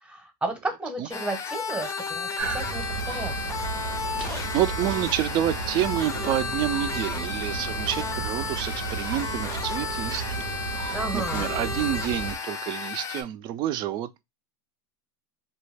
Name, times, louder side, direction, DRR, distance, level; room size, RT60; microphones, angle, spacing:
voice 1, 0.0-3.3 10.9-11.5, right 2 dB, 10° right, 0.8 m, -33 dB
sound 1, 1.1-13.2, left 6 dB, 25° left, 0.5 m, -33 dB
sound 2, 2.4-12.4, right 6 dB, 90° right, 0.6 m, -33 dB
sound 3, 2.8-2.9 3.5-5.4 6.6-6.8 7.5-7.6 7.8-8.2 8.9-9.9 10.6-10.9 11.3-12.8, left 8 dB, 85° left, 0.4 m, -48 dB
voice 2, 4.2-10.4 11.1-14.2, right 12 dB, 40° right, 0.3 m, -28 dB
2.3 x 2.1 x 3.2 m
hypercardioid pair, 110°, 11 cm